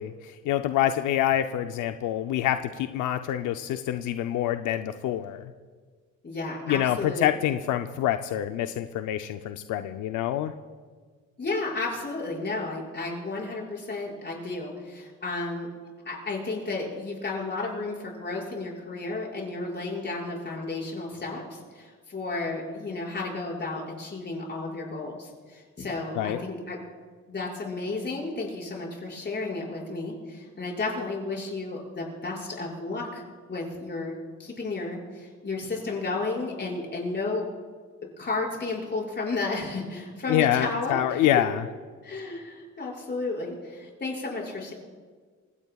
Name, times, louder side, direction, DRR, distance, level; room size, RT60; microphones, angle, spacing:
voice 1, 0.0-5.5 6.7-10.5 26.1-26.4 40.3-41.6, left 12 dB, 90° left, 8 dB, 0.6 m, -26 dB
voice 2, 6.2-7.3 11.4-15.7 16.0-26.8 27.3-33.2 33.5-37.4 38.2-41.3 42.0-44.7, left 3 dB, 35° left, -3 dB, 6.1 m, -33 dB
28.5 x 16.5 x 2.4 m, 1.5 s
cardioid pair, 90°, 30 cm